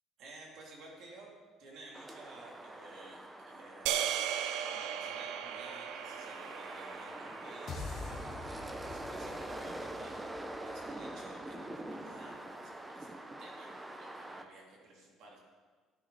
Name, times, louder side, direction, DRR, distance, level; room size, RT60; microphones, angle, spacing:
voice 1, 0.2-1.3 1.6-10.2 10.6-13.1 13.4-15.4, right 2 dB, 60° right, -2 dB, 3.2 m, -54 dB
sound 1, 1.9-14.4, right 1 dB, 10° right, 0.8 m, -45 dB
sound 2, 3.9-8.2, right 9 dB, 85° right, 0.6 m, -37 dB
sound 3, 7.7-12.0, left 4 dB, 40° left, 0.9 m, -47 dB
13.5 x 10.0 x 4.2 m, 1.4 s
cardioid pair, 140°, 0 cm